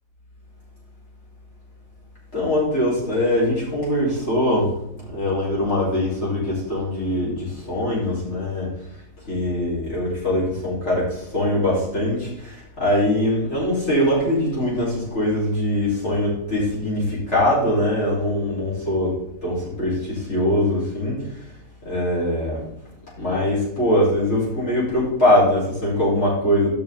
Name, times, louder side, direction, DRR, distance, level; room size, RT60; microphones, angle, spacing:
voice 1, 2.3-4.7 5.0-8.7 9.3-19.2 19.4-21.2 21.8-22.6 23.2-26.7, left 1 dB, 55° left, -7 dB, 5.0 m, -22 dB
12.0 x 6.4 x 3.9 m, 0.76 s
omnidirectional pair, 1.5 m